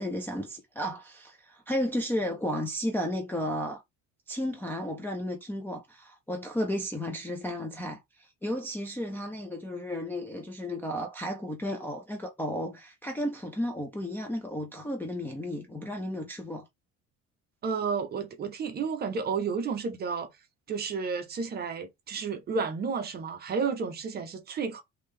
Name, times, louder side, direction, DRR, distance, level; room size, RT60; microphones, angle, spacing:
voice 1, 0.0-3.8 4.3-16.7, equal, 5° left, 0.4 m, -33 dB
voice 2, 17.6-20.3 20.7-24.8, right 5 dB, 30° right, 0.7 m, -31 dB
3.7 x 2.7 x 3.2 m
cardioid pair, 175°, 32 cm